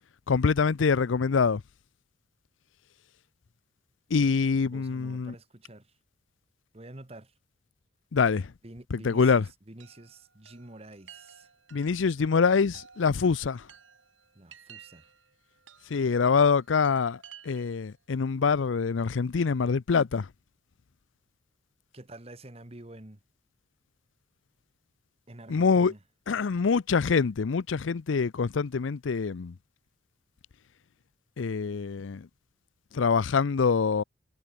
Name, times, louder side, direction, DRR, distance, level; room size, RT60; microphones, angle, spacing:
voice 1, 0.3-1.6 4.1-5.3 8.1-8.5 8.9-9.5 11.7-13.6 15.9-17.2 17.4-20.3 25.5-25.9 26.3-29.5 31.4-32.3 32.9-34.0, left 5 dB, 85° left, 0.5 m, -25 dB
voice 2, 4.7-5.9 6.7-7.3 8.6-11.5 14.3-15.1 21.9-23.2 25.3-26.0, right 1 dB, 30° right, 1.4 m, -48 dB
Chime, 9.8-17.9, right 8 dB, 90° right, 6.3 m, -55 dB
head